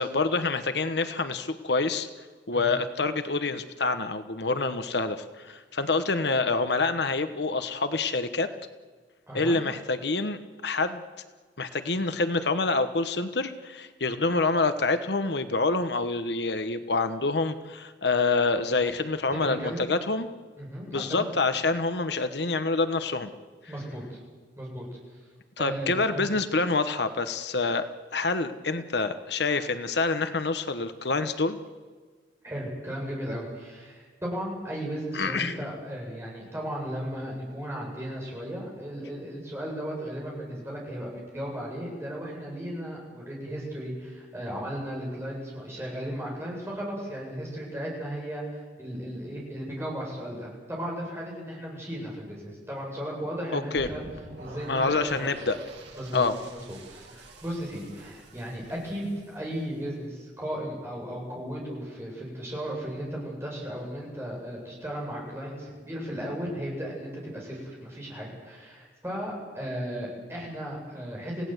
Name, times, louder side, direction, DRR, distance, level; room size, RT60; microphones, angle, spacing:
voice 1, 0.0-2.1 2.5-8.5 9.3-11.0 11.6-20.3 20.8-23.3 25.6-27.9 28.1-31.6 35.1-35.6 53.5-53.9 54.7-55.6 56.1-56.3, left 3 dB, 65° left, 10 dB, 1.1 m, -27 dB
voice 2, 9.3-9.6 19.3-19.8 20.6-21.3 23.7-24.2 24.6-24.9 25.6-26.3 32.4-54.0 54.4-55.3 56.0-71.5, equal, 15° right, -3 dB, 7.8 m, -35 dB
sound 1, 53.7-59.8, right 2 dB, 70° right, 7.8 m, -46 dB
28.0 x 17.0 x 8.1 m, 1.5 s
head